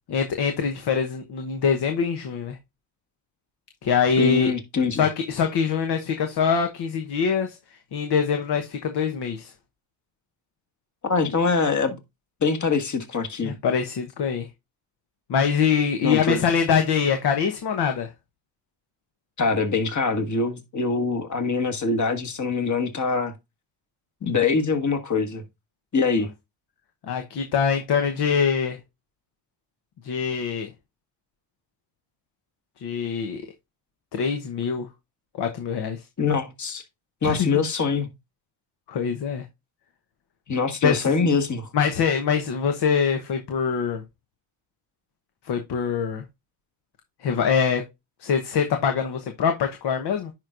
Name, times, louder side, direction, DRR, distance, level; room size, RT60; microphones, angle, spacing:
voice 1, 0.1-2.6 3.8-4.5 4.9-7.6 7.9-9.5 13.4-14.5 15.3-18.1 27.0-28.8 30.0-30.7 32.8-33.4 34.1-34.9 35.4-36.0 37.2-37.5 38.9-39.4 40.8-41.1 41.7-44.0 45.4-46.2 47.2-47.8 48.2-50.3, left 6 dB, 55° left, 1.1 m, -24 dB
voice 2, 4.2-5.0 11.0-12.0 12.4-13.5 16.0-16.4 19.4-23.3 24.2-25.4 25.9-26.3 36.2-36.8 37.2-38.1 40.5-41.7, left 4 dB, 35° left, 1.8 m, -24 dB
10.5 x 4.6 x 2.5 m
supercardioid pair, 70°, 48 cm